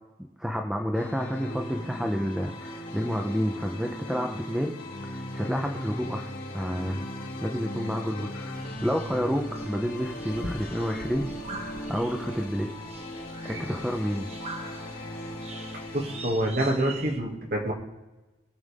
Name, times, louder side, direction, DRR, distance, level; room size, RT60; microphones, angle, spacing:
voice 1, 0.4-4.8 5.0-11.3 11.9-12.7 13.5-14.3, equal, 5° right, 2 dB, 0.8 m, -30 dB
sound 1, 0.9-16.3, left 1 dB, 55° left, 3.0 m, -38 dB
sound 2, 8.5-17.2, right 2 dB, 35° right, 1.3 m, -42 dB
voice 2, 15.9-17.7, right 1 dB, 55° right, 0 dB, 2.4 m, -26 dB
21.5 x 7.2 x 3.7 m, 1.1 s
head